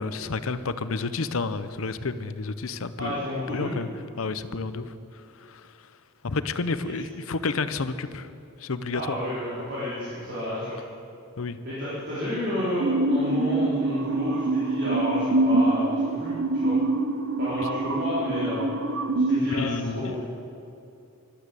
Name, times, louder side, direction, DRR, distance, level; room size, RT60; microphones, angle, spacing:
voice 1, 0.0-3.2 3.5-3.9 4.2-4.9 5.4-5.7 6.2-8.3 8.6-9.2 11.4-11.6 19.5-20.2, left 4 dB, 70° left, 13 dB, 0.7 m, -30 dB
voice 2, 3.0-3.7 8.9-10.8 11.6-16.8 17.4-18.6 19.3-20.2, left 1 dB, 50° right, -10 dB, 3.9 m, -31 dB
sound 1, 12.8-19.4, right 2 dB, 65° right, 1.0 m, -25 dB
14.0 x 12.0 x 8.2 m, 2.6 s
head